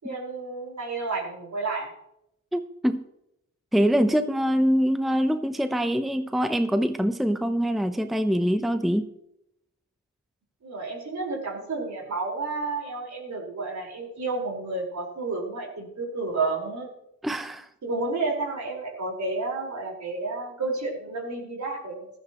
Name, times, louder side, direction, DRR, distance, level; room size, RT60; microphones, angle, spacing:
voice 1, 0.0-1.9 10.6-16.9 17.8-22.1, right 3 dB, 65° right, -1 dB, 4.8 m, -31 dB
voice 2, 2.5-3.0 3.7-9.1 17.2-17.7, equal, ahead, 9 dB, 0.8 m, -24 dB
15.5 x 13.0 x 3.0 m, 0.80 s
cardioid pair, 75°, 31 cm